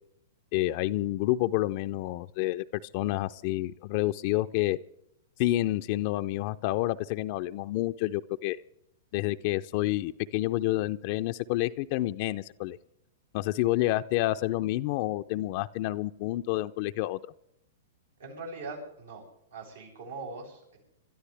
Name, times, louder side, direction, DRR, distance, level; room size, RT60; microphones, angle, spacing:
voice 1, 0.5-4.8 5.4-8.6 9.1-12.8 13.3-17.2, left 16 dB, 50° left, 10 dB, 0.5 m, -29 dB
voice 2, 18.2-19.2 19.5-20.8, right 3 dB, 85° right, -2 dB, 7.5 m, -41 dB
26.0 x 12.5 x 3.4 m, 0.79 s
hypercardioid pair, 120°, 0 cm